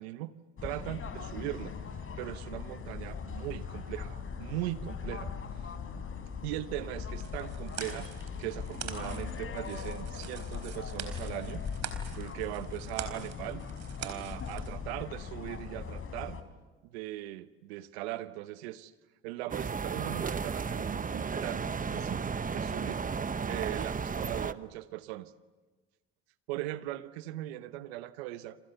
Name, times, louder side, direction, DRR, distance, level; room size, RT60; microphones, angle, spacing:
voice 1, 0.0-1.8 2.2-5.3 6.4-8.1 8.4-11.6 12.1-13.7 14.0-16.4 16.8-18.9 19.2-23.0 23.4-25.3 26.5-28.6, right 15 dB, 90° right, 14 dB, 1.0 m, -39 dB
sound 1, 0.6-16.4, left 6 dB, 45° left, 4.1 m, -40 dB
sound 2, 7.1-14.7, right 8 dB, 60° right, 4.2 m, -45 dB
sound 3, 19.5-24.5, right 5 dB, 25° right, 1.0 m, -34 dB
28.5 x 27.5 x 6.9 m, 1.3 s
hypercardioid pair, 65°, 31 cm